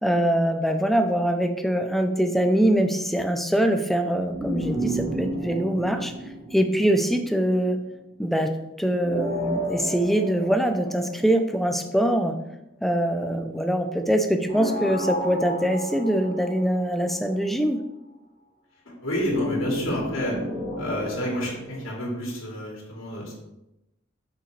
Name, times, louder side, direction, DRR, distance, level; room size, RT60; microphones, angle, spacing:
voice 1, 0.0-6.1 6.5-7.8 8.2-8.5 8.8-12.3 12.8-17.8, right 1 dB, ahead, 6 dB, 0.5 m, -23 dB
sound 1, 4.3-7.6 9.0-11.9 14.5-17.1 19.1-21.9, equal, 30° right, 1.4 m, -32 dB
voice 2, 19.0-20.3 20.8-23.3, equal, 80° left, -3 dB, 2.6 m, -29 dB
6.7 x 6.5 x 3.3 m, 0.91 s
head